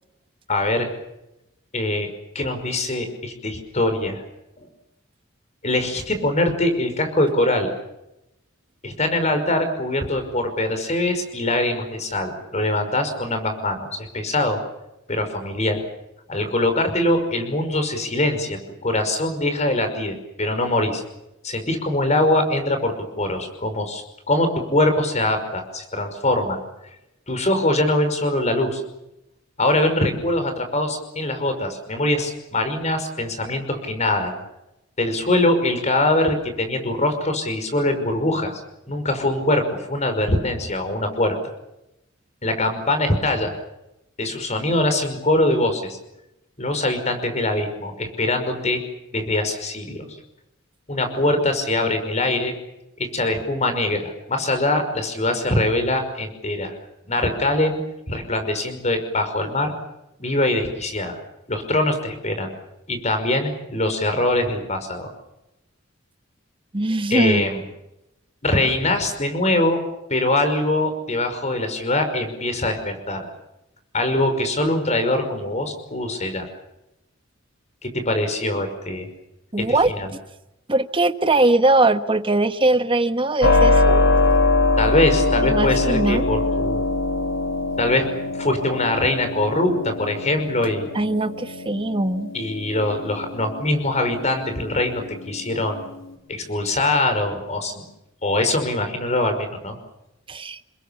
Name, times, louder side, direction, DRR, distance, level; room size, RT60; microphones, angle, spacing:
voice 1, 0.5-0.9 1.7-2.1 2.3-4.2 5.6-7.7 8.8-13.9 14.1-14.6 15.1-15.8 16.3-21.0 21.4-26.6 27.3-28.8 29.6-34.4 35.0-38.5 38.9-41.4 42.4-43.5 44.2-46.0 46.6-48.8 49.1-50.1 50.9-52.5 53.0-56.7 57.1-57.8 58.1-59.7 60.2-61.2 61.5-62.5 62.9-65.1 67.1-67.6 68.4-69.8 70.1-73.3 73.9-76.5 77.8-79.1 79.6-80.1 84.8-86.8 87.8-90.9 92.3-95.8 96.3-97.8 98.2-99.8, left 1 dB, 35° left, 8 dB, 5.5 m, -23 dB
voice 2, 66.7-67.4 79.5-79.9 80.7-84.0 85.4-86.2 90.9-92.3 100.3-100.6, right 2 dB, 25° right, 10 dB, 1.3 m, -20 dB
Keyboard (musical), 83.4-96.1, left 2 dB, 65° left, 3.8 m, -23 dB
29.0 x 21.5 x 7.3 m, 0.89 s
head